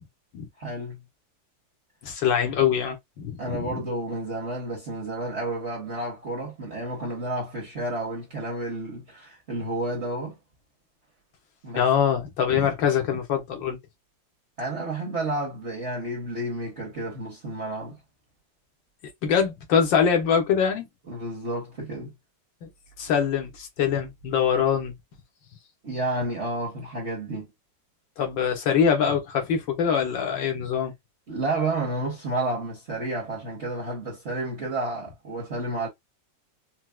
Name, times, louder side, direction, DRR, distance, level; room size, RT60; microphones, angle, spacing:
voice 1, 0.6-1.0 3.4-10.4 11.6-11.9 12.5-12.6 14.6-18.0 21.1-22.1 25.8-27.5 31.3-35.9, right 2 dB, 45° right, 1.1 m, -31 dB
voice 2, 2.0-3.8 11.7-13.8 19.2-20.9 22.6-22.7 23.0-24.9 28.2-30.9, left 7 dB, 85° left, 1.6 m, -23 dB
4.5 x 2.1 x 2.2 m
omnidirectional pair, 2.0 m